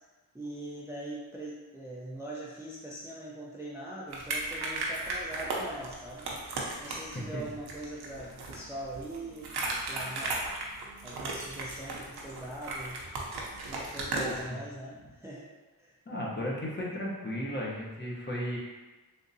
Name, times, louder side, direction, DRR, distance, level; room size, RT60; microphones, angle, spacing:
voice 1, 0.3-6.2 6.8-10.4 11.0-13.0 13.6-15.4 15.8-16.0, right 1 dB, 5° right, -6 dB, 0.5 m, -42 dB
sound 1, 4.1-14.5, right 2 dB, 85° right, 0.7 m, -36 dB
voice 2, 14.1-14.6 16.1-18.6, equal, 30° left, -4 dB, 0.9 m, -35 dB
3.5 x 2.6 x 2.6 m, 1.2 s
cardioid pair, 75°, 38 cm